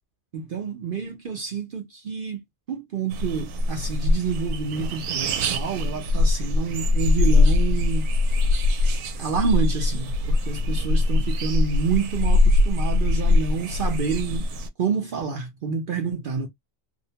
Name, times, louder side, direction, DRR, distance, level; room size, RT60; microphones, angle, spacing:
voice 1, 0.3-2.4 2.7-8.1 9.1-14.4 14.8-16.5, right 5 dB, 65° right, 0.5 m, -28 dB
sound 1, 3.1-14.7, left 2 dB, 85° right, 1.1 m, -22 dB
2.7 x 2.0 x 2.7 m
omnidirectional pair, 1.6 m